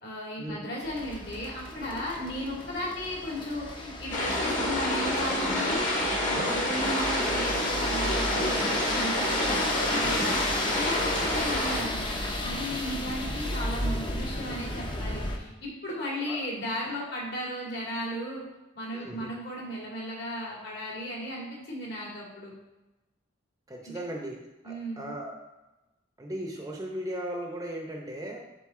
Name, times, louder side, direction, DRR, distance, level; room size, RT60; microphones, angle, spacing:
voice 1, 0.0-5.8 6.2-10.2 10.7-18.4 18.7-22.5 23.8-24.0 24.6-25.1, equal, 55° left, -4 dB, 2.3 m, -35 dB
sound 1, 0.8-15.4, left 1 dB, 25° left, 0.7 m, -34 dB
sound 2, 4.1-11.8, left 1 dB, 40° left, 1.4 m, -28 dB
voice 2, 6.3-6.7 16.3-16.4 18.9-19.3 23.7-24.4 24.6-25.4 26.2-28.4, right 1 dB, 15° right, 1 dB, 0.7 m, -37 dB
10.5 x 3.9 x 3.7 m, 1.0 s
head